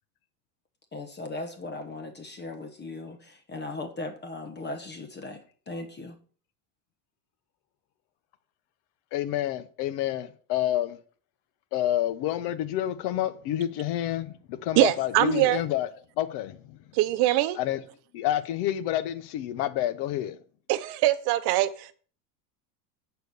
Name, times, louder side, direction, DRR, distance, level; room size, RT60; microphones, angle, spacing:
voice 1, 0.9-6.2, left 2 dB, 20° left, 1.1 m, -38 dB
voice 2, 9.1-11.0 11.7-15.9 16.2-16.8 17.5-17.8 18.1-20.4, left 12 dB, 55° left, 1.0 m, -28 dB
voice 3, 14.8-15.6 16.9-17.6 20.7-21.9, right 15 dB, 55° right, 0.9 m, -23 dB
7.9 x 4.6 x 6.8 m
supercardioid pair, 115°, 48 cm